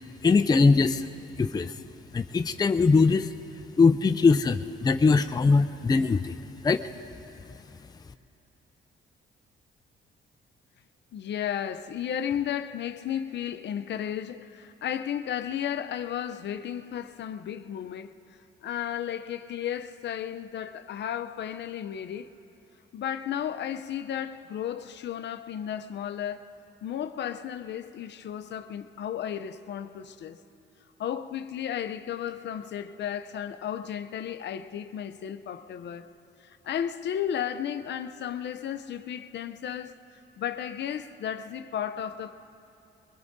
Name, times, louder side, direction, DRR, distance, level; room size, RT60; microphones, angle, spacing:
voice 1, 0.2-1.1 1.4-1.7 2.1-3.3 3.8-6.3 6.6-6.8, left 4 dB, 20° left, 0.5 m, -21 dB
voice 2, 11.1-18.1 18.6-22.3 22.9-26.5 26.8-30.4 31.0-36.1 36.4-40.0 40.4-42.3, left 9 dB, 60° left, 0.6 m, -34 dB
22.5 x 22.0 x 2.7 m
cardioid pair, 90°, 20 cm